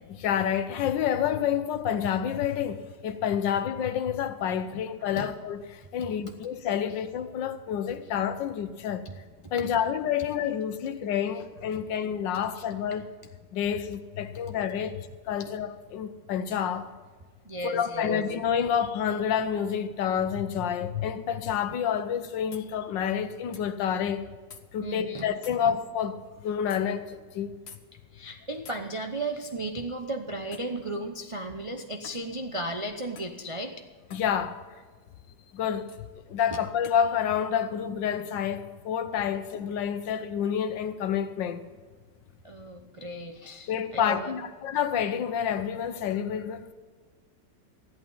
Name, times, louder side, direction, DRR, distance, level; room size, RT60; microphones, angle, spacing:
voice 1, 0.2-5.6 5.9-9.0 9.5-13.0 13.5-16.9 17.6-24.2 24.7-26.2 26.4-27.0 27.3-27.5 34.1-34.6 35.5-35.9 36.3-41.6 43.7-46.7, left 8 dB, 80° left, 1.5 m, -28 dB
voice 2, 4.7-5.3 9.0-9.1 9.4-9.5 12.5-12.6 12.9-13.0 15.4-15.5 17.4-18.2 24.8-25.8 28.1-33.8 36.5-36.6 42.4-44.3, right 2 dB, 50° right, 0.3 m, -35 dB
sound 1, 22.5-22.7 23.5-23.7 24.5-24.6 25.4-25.6 26.7-26.8 27.7-27.8 28.6-28.8 30.5-30.8 32.0-32.3 33.1-33.4 34.1-34.3 35.9-36.0 36.8-37.0, left 6 dB, 45° left, 0.9 m, -48 dB
14.0 x 11.5 x 5.5 m
omnidirectional pair, 2.0 m